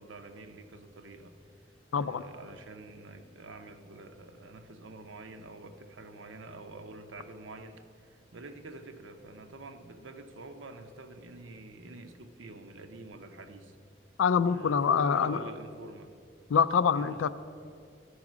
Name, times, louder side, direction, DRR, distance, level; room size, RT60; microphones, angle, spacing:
voice 1, 0.0-1.3 1.9-13.8 14.4-16.2 16.9-17.2, right 2 dB, 75° right, 8 dB, 0.7 m, -47 dB
voice 2, 1.9-2.2 14.2-15.4 16.5-17.3, left 6 dB, 85° left, 15 dB, 0.4 m, -25 dB
12.0 x 4.8 x 6.1 m, 2.4 s
head